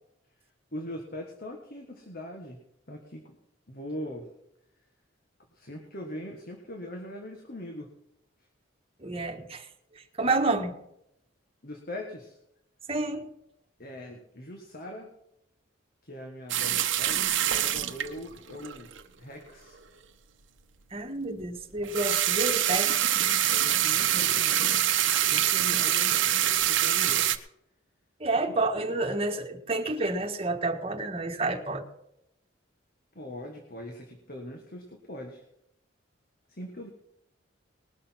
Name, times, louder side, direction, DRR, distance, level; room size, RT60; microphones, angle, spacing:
voice 1, 0.7-2.6 2.9-3.4 3.7-4.3 5.5-7.9 11.6-12.4 13.8-15.1 16.0-18.9 19.2-19.8 23.5-24.8 25.2-26.3 26.6-27.3 28.5-28.6 33.2-35.4 36.5-36.9, left 1 dB, 50° left, 3 dB, 1.6 m, -41 dB
voice 2, 9.0-9.7 10.2-10.7 12.9-13.3 20.9-22.9 28.2-31.8, right 2 dB, 30° right, 3 dB, 1.4 m, -29 dB
sound 1, 16.5-19.0 21.8-27.4, right 11 dB, 70° right, 0.9 m, -25 dB
20.0 x 6.8 x 5.8 m, 0.80 s
head